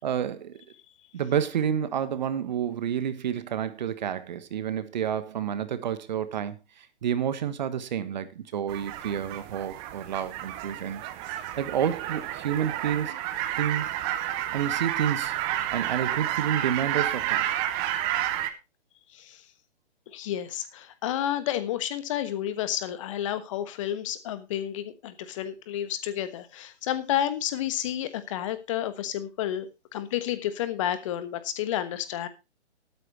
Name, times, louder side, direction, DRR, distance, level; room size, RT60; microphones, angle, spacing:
voice 1, 0.0-0.6 1.1-11.0 11.6-13.1 13.6-13.9 14.5-15.3 15.7-17.5, right 9 dB, 40° right, 1.3 m, -29 dB
sound 1, 8.7-18.5, right 12 dB, 15° right, 0.8 m, -30 dB
voice 2, 20.1-32.3, left 11 dB, 25° left, 1.2 m, -31 dB
13.0 x 13.0 x 3.0 m
figure-of-eight pair, 130°, 35 cm